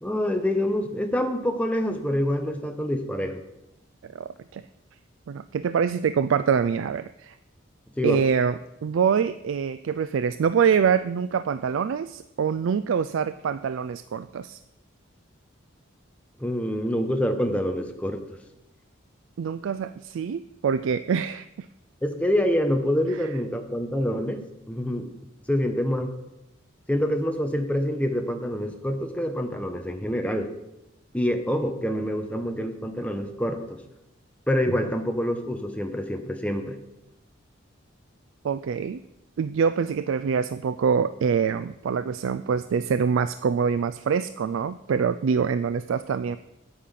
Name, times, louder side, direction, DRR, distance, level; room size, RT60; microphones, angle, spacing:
voice 1, 0.0-3.4 8.0-8.2 16.4-18.2 22.0-25.1 25.5-26.1 26.9-30.5 31.1-33.8 34.5-36.8, equal, 5° left, 5 dB, 1.0 m, -26 dB
voice 2, 4.0-4.6 5.3-7.4 8.0-14.6 19.4-21.7 23.2-23.3 38.4-39.0 39.4-46.4, right 6 dB, 75° right, 13 dB, 0.3 m, -25 dB
9.1 x 8.6 x 5.7 m, 0.89 s
head